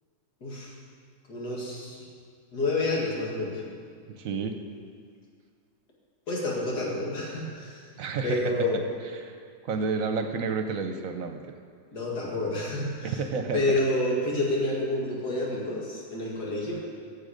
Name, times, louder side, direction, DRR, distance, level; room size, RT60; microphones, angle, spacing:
voice 1, 0.4-0.7 1.3-2.0 2.5-3.6 6.3-7.9 8.2-8.8 11.9-13.2 13.5-16.8, left 2 dB, 85° left, -4 dB, 2.8 m, -29 dB
voice 2, 4.1-4.6 8.0-8.5 9.1-11.5 13.0-13.8, right 5 dB, 65° right, 6 dB, 1.0 m, -31 dB
14.5 x 7.6 x 5.1 m, 2.1 s
omnidirectional pair, 1.7 m